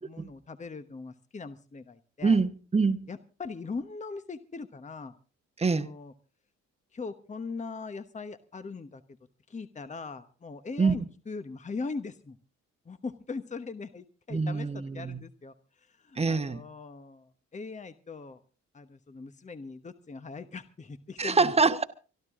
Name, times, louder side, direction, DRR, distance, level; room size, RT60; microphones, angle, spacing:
voice 1, 0.0-2.4 3.1-5.1 5.7-6.1 6.9-9.0 9.5-12.4 12.8-18.4 18.7-21.8, left 4 dB, 25° left, 1.1 m, -40 dB
voice 2, 2.2-3.1 5.6-5.9 10.8-11.1 14.3-15.2 16.2-16.6 21.2-21.8, right 4 dB, 20° right, 1.2 m, -25 dB
25.0 x 12.0 x 3.7 m
cardioid pair, 90°, 30 cm